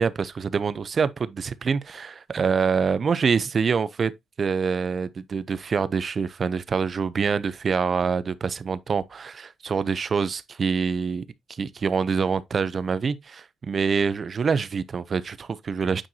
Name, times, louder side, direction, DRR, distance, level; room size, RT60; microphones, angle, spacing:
voice 1, 0.0-4.1 4.4-11.2 11.6-16.1, right 5 dB, 45° right, 0.6 m, -25 dB
8.8 x 4.6 x 2.8 m
cardioid pair, 90°, 0 cm